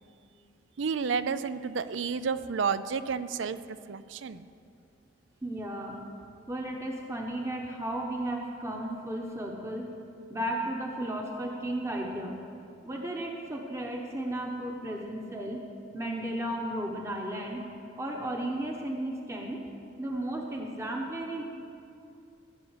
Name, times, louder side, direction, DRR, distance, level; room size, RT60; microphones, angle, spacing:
voice 1, 0.8-4.4, right 5 dB, 80° right, 13 dB, 0.5 m, -31 dB
voice 2, 5.4-6.0 6.5-9.9 10.3-12.3 12.8-15.6 15.9-17.6 18.0-19.6 20.0-21.4, right 1 dB, 15° right, 0 dB, 1.0 m, -34 dB
15.5 x 7.0 x 8.0 m, 2.6 s
head